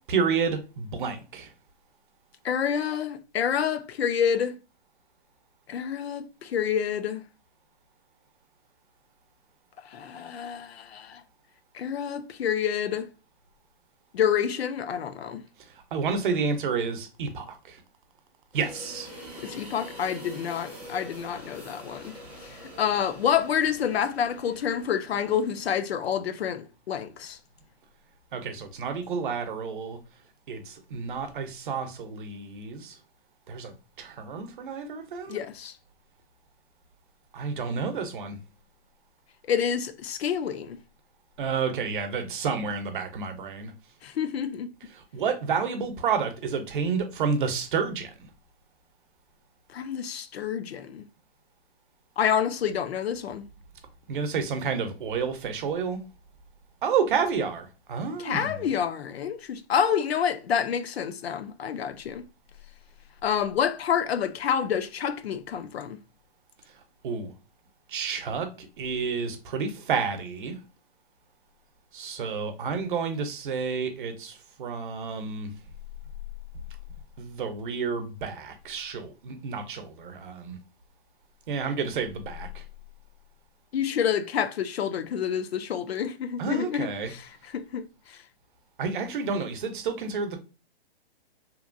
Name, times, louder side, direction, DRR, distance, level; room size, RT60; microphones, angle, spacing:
voice 1, 0.1-1.5 15.9-17.8 18.5-19.1 28.3-30.0 30.5-32.9 33.5-33.7 34.0-35.4 37.3-38.3 41.4-43.7 45.1-48.1 54.1-56.0 56.8-58.7 67.0-67.3 67.9-68.5 68.8-70.5 71.9-74.3 74.6-75.5 77.2-80.5 81.5-82.5 86.4-87.1 88.8-90.4, right 5 dB, 55° right, 0.6 m, -30 dB
voice 2, 2.4-4.6 5.7-7.2 9.8-11.2 11.7-13.1 14.1-15.4 19.4-22.1 22.4-27.4 35.3-35.8 39.5-40.8 44.0-44.7 49.7-51.0 52.2-53.5 58.2-62.3 63.2-66.0 83.7-88.2, left 8 dB, 85° left, 0.5 m, -28 dB
sound 1, 18.5-25.7, equal, 5° right, 0.4 m, -45 dB
2.9 x 2.2 x 2.5 m
hypercardioid pair, 145°, 30 cm